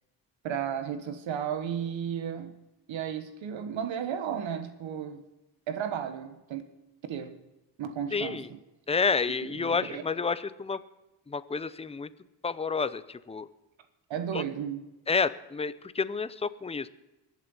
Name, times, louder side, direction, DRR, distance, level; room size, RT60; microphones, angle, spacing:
voice 1, 0.4-2.5 2.9-5.2 5.7-6.6 7.0-7.3 7.8-8.6 9.4-10.0 14.1-14.9, right 8 dB, 70° right, 9 dB, 1.3 m, -34 dB
voice 2, 8.1-8.5 8.9-10.8 11.3-12.1 12.4-13.5 14.3-14.4 15.1-16.9, left 5 dB, 15° left, 16 dB, 0.6 m, -29 dB
23.0 x 7.6 x 5.5 m, 1.0 s
cardioid pair, 80°, 47 cm